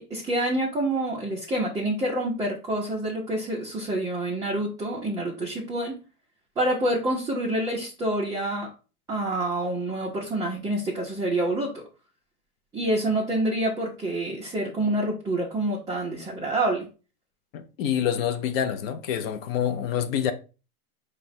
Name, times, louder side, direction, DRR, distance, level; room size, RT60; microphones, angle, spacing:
voice 1, 0.0-6.0 6.6-8.7 9.1-11.8 12.7-16.9, right 1 dB, 10° right, 0.6 m, -27 dB
voice 2, 17.5-20.3, left 9 dB, 40° left, 0.5 m, -27 dB
4.6 x 2.2 x 4.1 m
hypercardioid pair, 130°, 47 cm